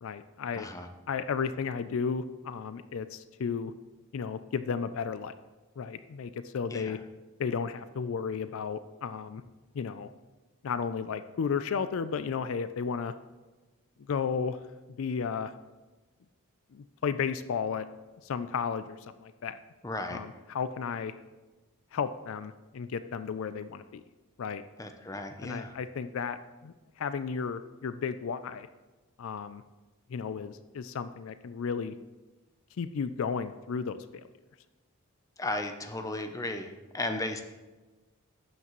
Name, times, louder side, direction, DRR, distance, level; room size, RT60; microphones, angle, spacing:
voice 1, 0.0-0.7 1.1-3.7 4.1-5.3 5.8-7.0 7.4-9.4 9.7-10.1 10.6-13.1 14.1-14.6 15.0-15.5 16.7-17.9 18.2-19.6 20.1-21.1 21.9-24.0 24.4-24.6 25.4-26.4 26.6-28.7 29.2-29.6 30.1-31.9 32.8-34.3, left 6 dB, 65° left, 12 dB, 0.4 m, -33 dB
voice 2, 0.5-0.9 6.7-7.0 19.8-20.2 24.8-25.7 35.4-37.4, left 2 dB, 15° left, 7 dB, 0.6 m, -35 dB
11.5 x 8.2 x 3.1 m, 1.2 s
head